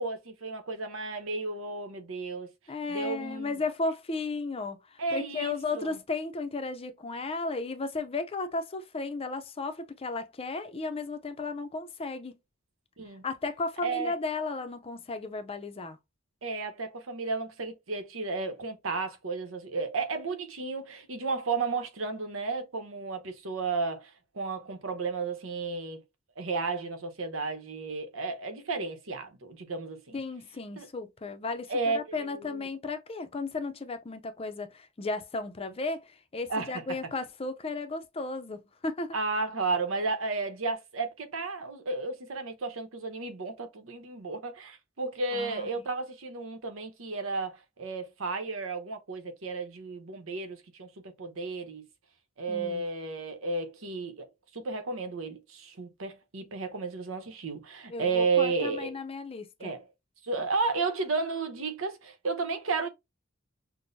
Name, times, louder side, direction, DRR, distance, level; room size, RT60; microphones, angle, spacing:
voice 1, 0.0-2.5 2.9-3.6 5.0-6.0 13.0-13.2 13.8-14.2 16.4-26.0 26.4-30.2 30.8-30.9 31.7-32.7 36.5-36.8 39.1-50.9 51.2-51.8 52.4-54.3 54.5-59.0 59.6-59.9 60.2-62.9, right 4 dB, 90° right, 0.9 m, -33 dB
voice 2, 2.7-12.4 13.2-16.0 30.1-39.1 45.3-45.7 52.5-52.8 57.9-59.7, left 3 dB, 30° left, 0.5 m, -34 dB
6.1 x 2.1 x 2.6 m
head